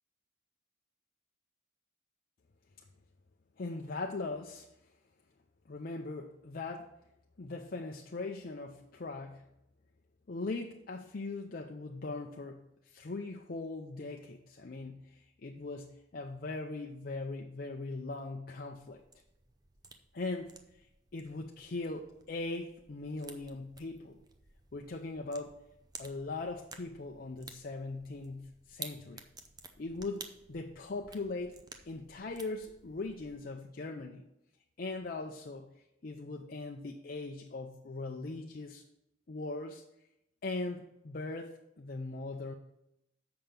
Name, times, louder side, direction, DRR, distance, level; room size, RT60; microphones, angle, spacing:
voice 1, 3.6-4.7 5.7-6.9 7.4-9.5 10.3-19.0 20.1-20.9 21.1-24.2 24.7-25.6 26.0-29.2 29.8-31.6 31.8-34.2 34.8-35.7 36.0-38.8 39.3-39.8 40.4-42.5, left 3 dB, 45° left, 2 dB, 0.5 m, -40 dB
sound 1, 18.7-33.4, right 4 dB, 20° right, 0.6 m, -53 dB
7.7 x 5.6 x 5.2 m, 0.85 s
head